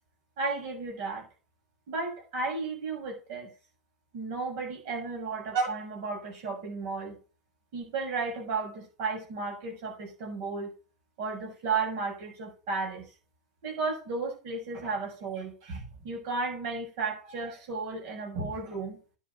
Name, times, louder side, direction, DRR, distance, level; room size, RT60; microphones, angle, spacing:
voice 1, 0.4-1.3 1.9-3.5 4.1-7.2 7.7-10.7 11.2-13.1 13.6-19.0, right 4 dB, 45° right, 7.0 m, -33 dB
10.0 x 5.7 x 6.8 m
figure-of-eight pair, 90°, 0 cm